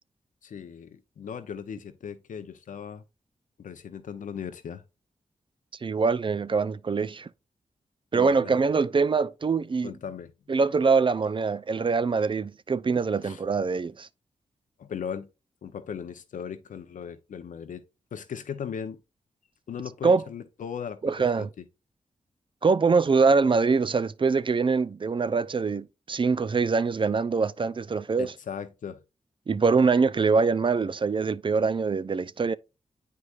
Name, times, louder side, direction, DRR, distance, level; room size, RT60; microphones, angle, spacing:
voice 1, 0.4-3.0 3.6-4.8 8.1-8.6 9.8-10.3 13.2-13.4 14.8-15.3 15.6-17.8 18.1-19.0 19.7-21.0 21.4-21.6 28.2-29.0, left 7 dB, 75° left, 0.7 m, -37 dB
voice 2, 5.8-7.3 8.1-9.9 10.5-14.1 20.0-20.2 21.0-21.5 22.6-28.3 29.5-32.5, right 4 dB, 40° right, 0.4 m, -24 dB
8.4 x 4.7 x 2.4 m
supercardioid pair, 40°, 13 cm